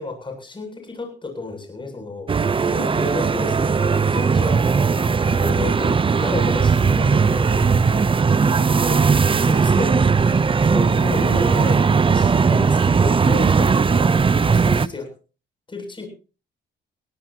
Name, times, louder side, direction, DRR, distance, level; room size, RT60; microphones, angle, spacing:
voice 1, 0.0-4.7 5.3-7.4 8.8-9.0 9.3-15.1 15.7-16.1, left 3 dB, 25° left, 5 dB, 8.0 m, -32 dB
sound 1, 2.3-14.9, right 5 dB, 25° right, 0.7 m, -18 dB
voice 2, 4.9-5.7 6.6-8.1 8.4-9.0 10.8-11.1, left 6 dB, 75° left, 4 dB, 3.5 m, -39 dB
21.5 x 17.0 x 2.9 m, 0.35 s
cardioid pair, 90°, 20 cm